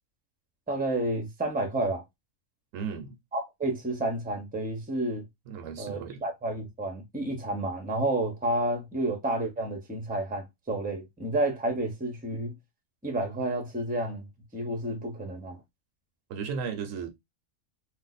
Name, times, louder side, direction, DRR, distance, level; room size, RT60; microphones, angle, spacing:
voice 1, 0.7-2.0 3.3-5.2 5.8-12.5 13.0-14.3 14.5-15.6, right 1 dB, 10° right, 0.7 m, -30 dB
voice 2, 2.7-3.2 5.5-6.2 16.3-17.1, right 6 dB, 75° right, 1.0 m, -35 dB
2.7 x 2.2 x 3.9 m
omnidirectional pair, 1.4 m